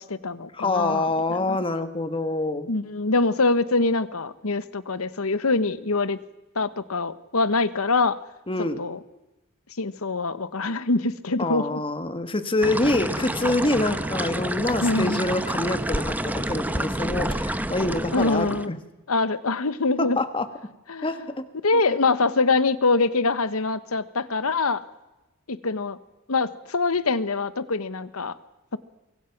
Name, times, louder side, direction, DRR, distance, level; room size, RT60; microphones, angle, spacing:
voice 1, 0.0-1.6 2.7-6.2 6.5-8.2 8.8-9.0 9.8-11.8 14.8-15.3 18.1-18.7 19.1-20.2 20.9-21.1 21.6-24.8 25.5-26.0 26.3-28.3 28.7-28.8, left 3 dB, 75° left, 15 dB, 1.1 m, -24 dB
voice 2, 0.5-2.7 8.5-8.8 11.4-18.8 20.0-20.5 21.0-21.4 21.9-22.0, left 2 dB, 25° left, 10 dB, 1.5 m, -26 dB
sound 1, 12.6-18.7, right 1 dB, 10° right, 0.9 m, -28 dB
24.0 x 24.0 x 5.9 m, 1.0 s
head